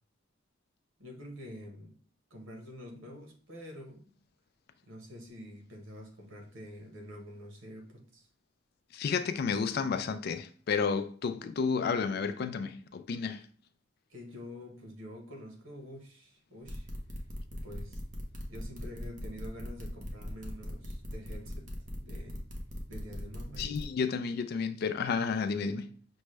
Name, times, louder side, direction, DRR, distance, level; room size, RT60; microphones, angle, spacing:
voice 1, 1.0-2.0 2.3-4.1 4.8-8.3 14.1-16.9 17.5-18.0 18.5-21.7 22.0-22.4 22.9-23.8, equal, 85° right, 1.2 m, -47 dB
voice 2, 8.9-13.4 23.6-26.0, left 5 dB, 50° left, 0.3 m, -31 dB
sound 1, 16.7-23.8, equal, 40° right, 0.8 m, -40 dB
6.0 x 2.2 x 3.2 m
head